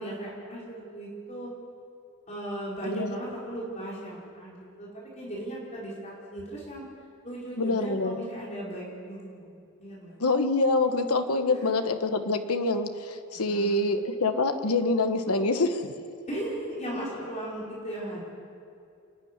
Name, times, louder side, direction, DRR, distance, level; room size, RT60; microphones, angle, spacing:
voice 1, 0.0-1.5 2.3-6.8 7.2-9.5 9.8-10.2 11.5-11.7 13.3-13.8 16.3-18.2, right 1 dB, 30° left, -5 dB, 4.7 m, -37 dB
voice 2, 7.6-8.2 10.2-15.9, left 2 dB, 85° left, 7 dB, 1.3 m, -26 dB
28.5 x 10.5 x 9.8 m, 2.5 s
head